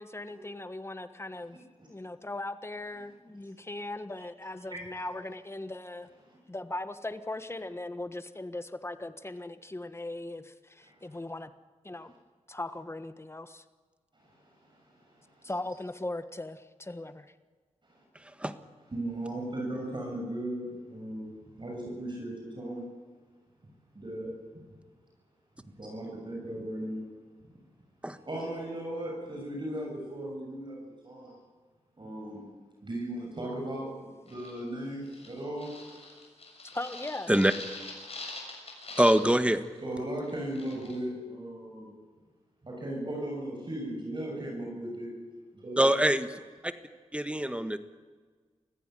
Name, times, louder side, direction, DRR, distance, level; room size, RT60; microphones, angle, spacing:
voice 1, 0.0-1.6 1.9-6.1 6.5-11.5 11.8-12.1 12.5-13.6 15.4-17.3 36.7-37.3, left 2 dB, 20° left, 10 dB, 1.4 m, -39 dB
voice 2, 4.7-5.0 6.2-6.4 14.2-14.3 14.7-14.8 18.9-21.3 21.6-22.8 23.9-24.3 25.6-27.0 28.3-31.4 32.0-32.4 32.8-33.9 34.3-35.7 39.8-42.0 42.6-45.2 45.5-45.9, right 1 dB, 40° right, -1 dB, 7.0 m, -37 dB
sound 1, 34.3-34.6 35.1-39.4 39.6-39.8 40.2-41.0, left 2 dB, 55° left, 7.0 m, -44 dB
voice 3, 39.0-39.6 45.8-46.3 46.6-46.7 47.1-47.8, right 1 dB, 10° right, 9 dB, 1.5 m, -24 dB
25.0 x 15.5 x 9.2 m, 1.4 s
wide cardioid pair, 70°, 12 cm